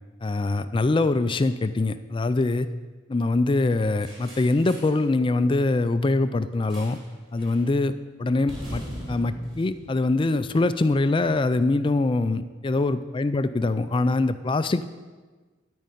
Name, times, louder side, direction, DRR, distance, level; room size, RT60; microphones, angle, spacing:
voice 1, 0.2-2.7 3.1-7.0 7.3-7.9 8.2-14.9, left 2 dB, 25° left, 12 dB, 0.3 m, -23 dB
sound 1, 4.0-5.0 6.7-7.1 7.4-7.7 8.5-10.8, equal, 25° right, 4.4 m, -40 dB
12.5 x 5.4 x 9.1 m, 1.3 s
head